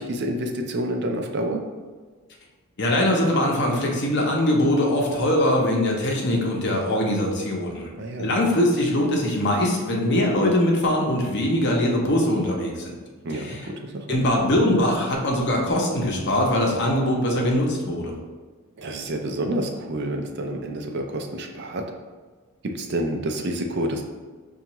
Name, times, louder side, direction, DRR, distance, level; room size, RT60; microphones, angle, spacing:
voice 1, 0.0-1.6 8.0-8.3 13.2-14.2 18.8-21.9 22.6-24.0, right 1 dB, 50° right, 3 dB, 0.4 m, -28 dB
voice 2, 2.8-7.9 8.2-13.0 13.3-13.6 14.1-18.2, left 1 dB, 55° left, -1 dB, 0.7 m, -22 dB
5.5 x 2.4 x 2.9 m, 1.4 s
head